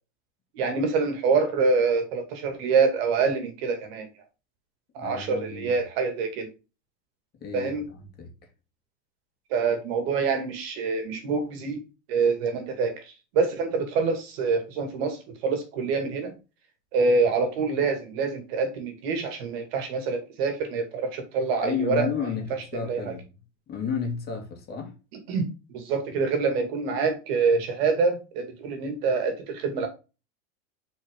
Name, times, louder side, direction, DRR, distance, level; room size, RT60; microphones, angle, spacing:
voice 1, 0.5-4.1 4.9-6.5 7.5-7.9 9.5-11.8 12.1-16.3 16.9-22.1 22.7-23.1 25.3-29.9, right 4 dB, 60° right, 2.5 m, -26 dB
voice 2, 5.0-5.7 7.4-8.3 21.6-23.3 23.7-25.0, left 6 dB, 30° left, 2.2 m, -32 dB
6.4 x 4.6 x 3.8 m
supercardioid pair, 145°, 34 cm